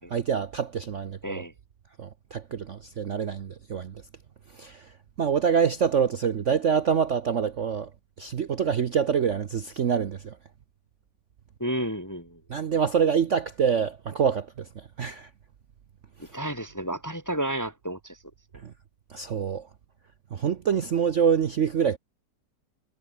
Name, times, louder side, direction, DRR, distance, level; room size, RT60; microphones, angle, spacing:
voice 1, 0.1-1.4 2.0-4.0 4.6-4.9 5.2-7.9 8.2-10.4 12.5-15.3 18.6-18.7 19.1-19.7 20.3-22.0, right 7 dB, 50° right, 1.0 m, -26 dB
voice 2, 11.6-12.4 16.2-18.2, right 1 dB, 10° left, 1.2 m, -31 dB
omnidirectional pair, 2.0 m